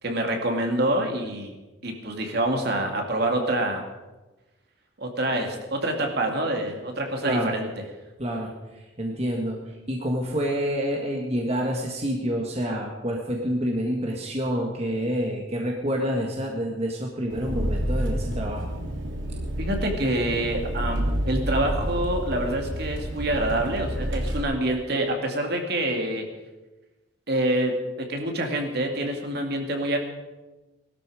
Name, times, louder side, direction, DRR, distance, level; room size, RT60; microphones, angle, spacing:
voice 1, 0.0-1.5 1.8-3.8 5.0-7.7 19.6-26.2 27.3-27.7 28.1-30.0, right 1 dB, 55° right, 3 dB, 2.5 m, -26 dB
voice 2, 7.2-7.5 8.2-8.5 9.0-9.6 9.9-18.7, equal, 35° right, 0 dB, 1.7 m, -28 dB
Engine, 17.3-24.4, equal, 85° right, 3.1 m, -29 dB
20.0 x 12.5 x 5.0 m, 1.1 s
head